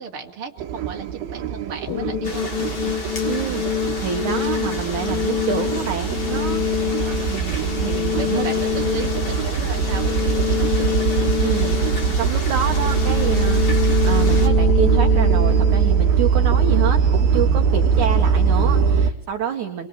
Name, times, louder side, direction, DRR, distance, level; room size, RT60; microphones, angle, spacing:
voice 1, 0.0-3.0 6.7-7.3 8.2-11.0 17.7-17.9, right 5 dB, 40° right, 2 dB, 3.3 m, -35 dB
sound 1, 0.6-19.1, right 6 dB, 75° right, 3.0 m, -21 dB
sound 2, 1.9-16.9, left 10 dB, 70° left, 3.3 m, -26 dB
sound 3, 2.2-14.5, left 2 dB, 35° left, 4.0 m, -34 dB
voice 2, 3.3-6.6 7.3-8.5 11.4-11.8 12.2-19.9, right 8 dB, 60° right, 3 dB, 2.8 m, -27 dB
29.5 x 23.0 x 8.8 m, 0.74 s
omnidirectional pair, 4.3 m